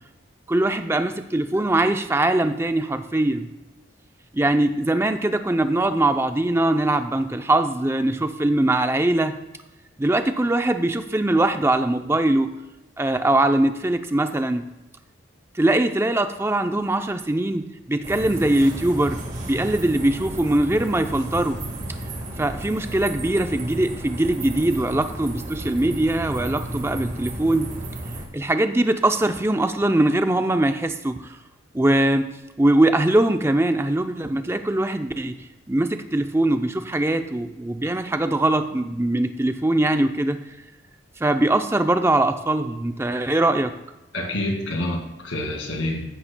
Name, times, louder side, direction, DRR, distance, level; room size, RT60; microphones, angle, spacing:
voice 1, 0.5-3.5 4.3-9.4 10.0-12.5 13.0-14.6 15.5-19.2 19.4-21.6 22.4-27.7 28.3-31.4 31.7-32.3 32.6-35.4 35.7-40.4 41.2-43.7, right 1 dB, 15° right, 8 dB, 0.5 m, -21 dB
sound 1, 18.0-28.3, right 1 dB, 40° right, 1.7 m, -33 dB
voice 2, 44.1-46.0, left 1 dB, 85° left, 1 dB, 2.2 m, -27 dB
15.0 x 8.6 x 2.2 m, 1.0 s
head